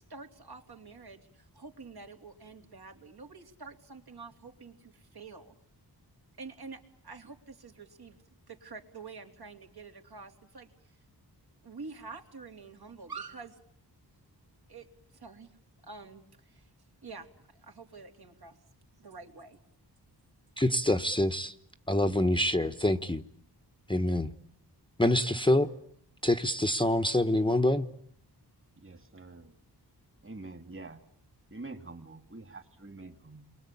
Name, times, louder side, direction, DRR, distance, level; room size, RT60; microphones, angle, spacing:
voice 1, 0.0-5.6 6.4-8.2 8.5-10.7 11.6-13.6 14.7-15.6 15.8-16.7 17.0-18.6 19.0-19.6, right 4 dB, 65° right, 3.5 m, -47 dB
voice 2, 20.6-21.5 21.9-23.2 23.9-24.3 25.0-25.7 26.2-27.9, left 1 dB, 10° left, 1.1 m, -26 dB
voice 3, 28.8-29.5 30.2-31.0 31.5-33.5, right 3 dB, 30° right, 2.5 m, -46 dB
29.5 x 23.0 x 8.6 m
wide cardioid pair, 85°, 41 cm